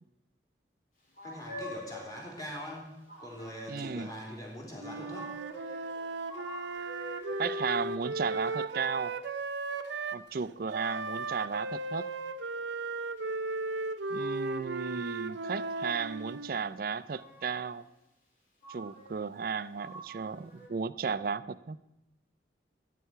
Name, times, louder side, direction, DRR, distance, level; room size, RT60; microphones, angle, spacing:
sound 1, 1.2-2.3 3.1-4.1 5.0-7.7 14.5-14.6 15.4-16.3 16.9-17.8 18.6-19.5 19.7-20.7, right 1 dB, 45° left, 3.2 m, -45 dB
voice 1, 1.2-5.4, left 1 dB, 20° left, 3.0 m, -43 dB
voice 2, 3.7-4.1 7.4-9.1 10.1-12.1 14.1-17.8 18.7-21.8, right 5 dB, 50° right, 0.4 m, -34 dB
Wind instrument woodwind instrument, 4.8-10.2 10.7-16.6, right 3 dB, 80° right, 0.7 m, -36 dB
14.0 x 9.1 x 5.6 m
head